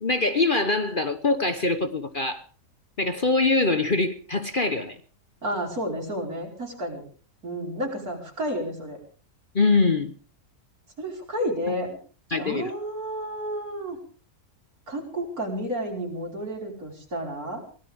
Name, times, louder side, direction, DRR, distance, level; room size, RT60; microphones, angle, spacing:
voice 1, 0.0-2.4 3.0-5.0 9.5-10.1 12.3-12.7, left 3 dB, 40° left, 9 dB, 1.1 m, -23 dB
voice 2, 5.4-7.0 7.4-9.0 11.0-12.0 12.4-14.0 14.9-17.6, equal, 65° right, 0 dB, 5.2 m, -31 dB
23.5 x 17.0 x 3.6 m, 0.38 s
omnidirectional pair, 1.6 m